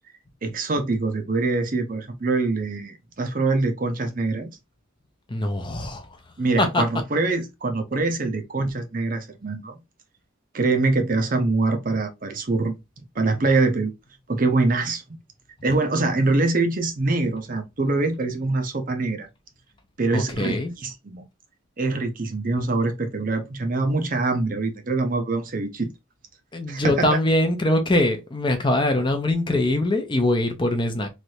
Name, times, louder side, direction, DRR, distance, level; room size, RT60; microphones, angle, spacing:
voice 1, 0.4-4.5 6.4-9.8 10.5-13.9 14.3-15.0 15.6-19.3 20.0-21.2 21.8-25.9 26.7-27.1, right 3 dB, 40° right, 0.6 m, -24 dB
voice 2, 5.3-6.2 6.6-6.8 20.1-20.7 26.5-31.1, left 1 dB, 20° left, 0.5 m, -22 dB
3.2 x 2.6 x 2.7 m
head